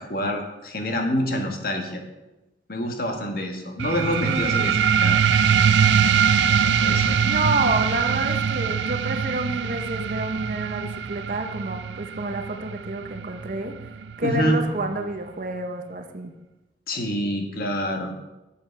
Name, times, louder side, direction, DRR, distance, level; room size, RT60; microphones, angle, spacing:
voice 1, 0.0-2.0 2.7-5.2 6.8-7.2 14.2-14.6 16.9-18.1, equal, 55° left, 3 dB, 1.6 m, -26 dB
sound 1, 3.8-14.8, right 7 dB, 85° right, 0.5 m, -23 dB
voice 2, 4.2-4.7 7.2-13.7 14.2-16.3, right 2 dB, 45° right, 6 dB, 0.8 m, -29 dB
11.0 x 7.5 x 4.5 m, 1.0 s
head